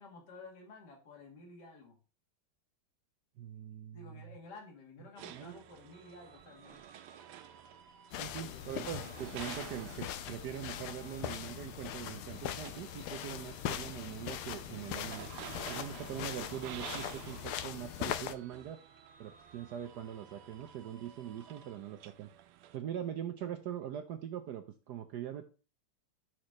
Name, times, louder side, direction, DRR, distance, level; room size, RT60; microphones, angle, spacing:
voice 1, 0.0-2.0 3.9-6.9 8.4-8.7, left 3 dB, 50° left, 1 dB, 2.3 m, -52 dB
voice 2, 3.4-4.2 5.3-5.6 8.2-15.3 15.7-18.8 19.2-22.3 22.7-25.4, right 10 dB, 70° right, 8 dB, 1.0 m, -42 dB
sound 1, 5.2-22.8, right 12 dB, 85° right, 1.5 m, -52 dB
sound 2, 5.9-21.8, right 3 dB, 20° right, 1.5 m, -62 dB
sound 3, 8.1-18.4, left 11 dB, 85° left, 1.5 m, -41 dB
6.1 x 4.5 x 6.4 m, 0.35 s
omnidirectional pair, 2.4 m